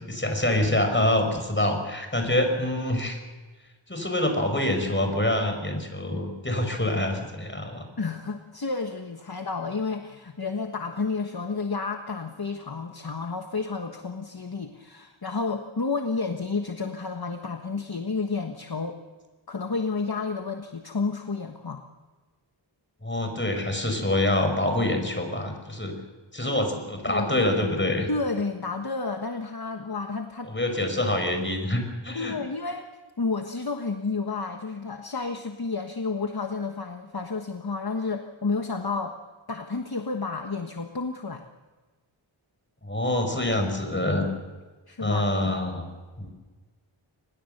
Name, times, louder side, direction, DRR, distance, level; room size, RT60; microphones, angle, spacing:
voice 1, 0.0-3.2 3.9-7.9 23.0-25.9 26.3-28.1 30.4-32.4 42.8-44.3 45.0-45.9 46.2-46.3, left 1 dB, 25° left, 5 dB, 5.3 m, -26 dB
voice 2, 8.0-19.0 19.5-21.8 27.1-27.4 28.1-30.5 32.1-32.9 33.2-39.2 39.5-41.4 44.9-45.5, left 4 dB, 45° left, 5 dB, 1.4 m, -31 dB
24.5 x 20.5 x 6.7 m, 1.3 s
wide cardioid pair, 55°, 49 cm